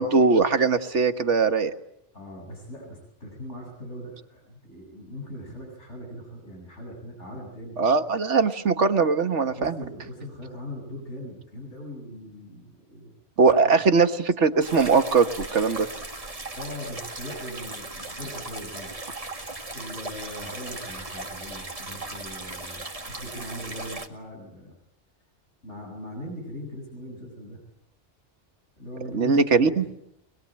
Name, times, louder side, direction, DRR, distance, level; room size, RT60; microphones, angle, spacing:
voice 1, 0.0-1.7 7.8-9.8 13.4-15.9 29.1-29.8, right 4 dB, 80° right, 8 dB, 1.7 m, -21 dB
voice 2, 2.1-8.0 9.5-13.1 13.7-13.8 16.5-18.9 19.7-24.8 25.6-27.6 28.8-29.8, equal, 80° left, 1 dB, 7.3 m, -40 dB
sound 1, 14.6-24.1, right 2 dB, 30° right, 2.0 m, -37 dB
24.0 x 21.5 x 8.8 m, 0.79 s
omnidirectional pair, 1.2 m